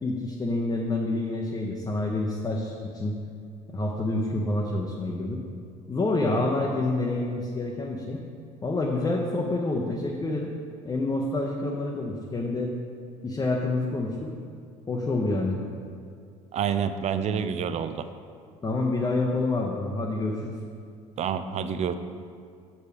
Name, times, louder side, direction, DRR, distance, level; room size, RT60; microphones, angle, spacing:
voice 1, 0.0-3.1 3.7-5.4 5.9-8.2 8.6-10.5 10.8-12.7 13.2-14.3 14.9-15.6 18.6-20.5, left 2 dB, 20° left, -1 dB, 0.8 m, -27 dB
voice 2, 16.5-18.1 21.2-21.9, right 7 dB, 35° right, 11 dB, 0.5 m, -28 dB
6.6 x 4.9 x 5.1 m, 2.2 s
hypercardioid pair, 70°, 19 cm